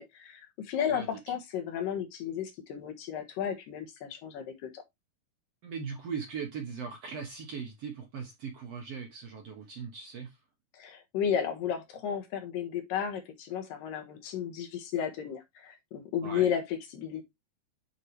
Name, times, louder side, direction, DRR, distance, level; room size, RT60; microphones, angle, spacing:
voice 1, 0.0-4.8 10.7-17.2, left 8 dB, 70° left, 2.9 m, -33 dB
voice 2, 5.6-10.4 16.2-16.5, right 6 dB, 55° right, 1.9 m, -39 dB
9.7 x 4.8 x 3.3 m
omnidirectional pair, 4.3 m